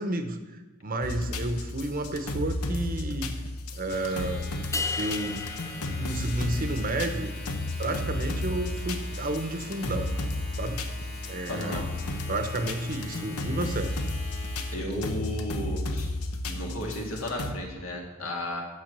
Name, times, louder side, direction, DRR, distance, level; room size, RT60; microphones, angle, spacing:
voice 1, 0.0-3.3 3.7-4.5 5.0-5.5 5.9-7.3 7.8-10.1 10.6-10.8 11.3-11.9 12.3-13.9, right 2 dB, 40° right, 8 dB, 0.9 m, -31 dB
sound 1, 1.0-17.5, left 2 dB, 90° left, 1.0 m, -33 dB
Domestic sounds home sounds, 3.8-14.9, left 2 dB, 45° left, 2.5 m, -44 dB
sound 2, 4.7-7.0, left 3 dB, 15° left, 0.3 m, -35 dB
voice 2, 11.5-11.8 14.7-16.1 16.5-18.6, left 1 dB, 65° left, 0 dB, 2.1 m, -33 dB
9.2 x 6.9 x 6.7 m, 1.2 s
head